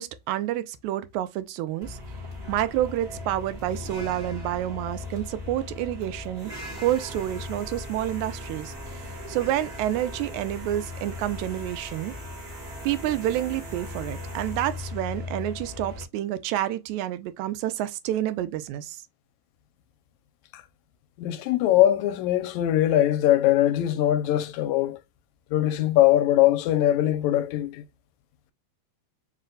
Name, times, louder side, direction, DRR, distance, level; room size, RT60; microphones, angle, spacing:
voice 1, 0.0-2.0 2.5-6.5 6.8-12.1 12.8-19.0, right 13 dB, 85° right, 2.0 m, -29 dB
sound 1, 1.8-16.0, left 2 dB, 30° right, 0.7 m, -38 dB
voice 2, 21.2-25.0 25.5-27.8, left 13 dB, 85° left, 1.9 m, -21 dB
4.7 x 2.2 x 3.7 m
omnidirectional pair, 3.3 m